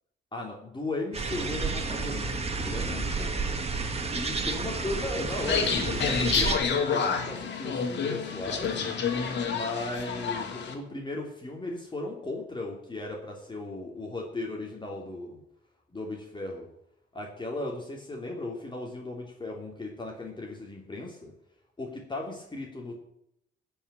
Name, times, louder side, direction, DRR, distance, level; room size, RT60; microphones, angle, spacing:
voice 1, 0.3-3.4 4.1-8.9 9.5-15.4 15.9-16.7 17.1-21.3 21.8-23.0, left 2 dB, 25° left, 0 dB, 2.8 m, -36 dB
sound 1, 1.1-6.6, right 3 dB, 30° right, 2.0 m, -31 dB
sound 2, 5.4-10.7, left 6 dB, 65° left, 2.6 m, -29 dB
15.0 x 5.6 x 9.9 m, 0.78 s
cardioid pair, 90°, 20 cm